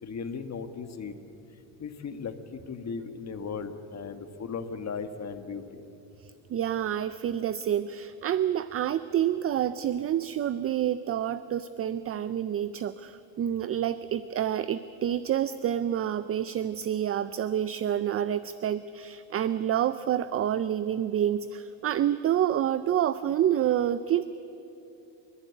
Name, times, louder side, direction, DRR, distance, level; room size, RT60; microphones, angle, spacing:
voice 1, 0.0-1.1 1.8-5.9, left 5 dB, 35° left, 9 dB, 1.5 m, -37 dB
voice 2, 6.2-24.2, right 10 dB, 30° right, 15 dB, 0.4 m, -28 dB
30.0 x 11.5 x 9.8 m, 3.0 s
cardioid pair, 125°, 48 cm